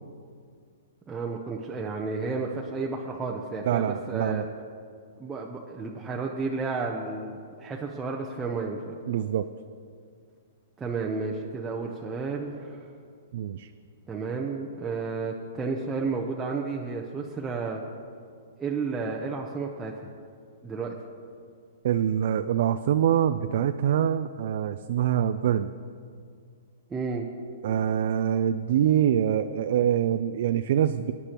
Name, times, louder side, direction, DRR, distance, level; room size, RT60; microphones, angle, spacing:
voice 1, 1.1-4.4 5.2-9.0 10.8-12.9 14.1-17.8 18.6-20.1 20.6-20.9 26.9-27.3, right 4 dB, 15° right, -2 dB, 0.8 m, -32 dB
voice 2, 3.7-4.5 9.1-9.5 13.3-13.7 21.8-25.7 27.6-31.1, right 10 dB, 60° right, 10 dB, 0.4 m, -25 dB
19.5 x 9.7 x 3.0 m, 2.2 s
hypercardioid pair, 135°, 0 cm